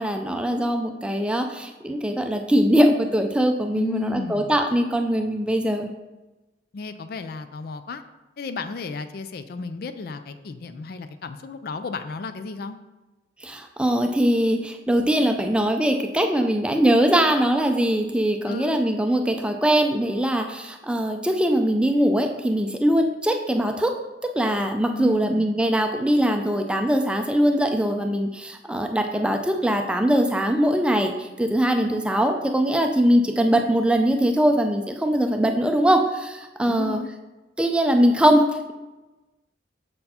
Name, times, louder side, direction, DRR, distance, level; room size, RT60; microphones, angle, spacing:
voice 1, 0.0-5.9 13.4-23.9 24.2-37.0 37.6-38.7, equal, 5° right, 4 dB, 0.4 m, -21 dB
voice 2, 3.8-4.6 6.7-8.0 8.4-12.8 18.5-18.8 24.9-25.5 36.7-37.1, left 3 dB, 55° left, 10 dB, 0.4 m, -33 dB
6.6 x 4.3 x 4.2 m, 1.1 s
head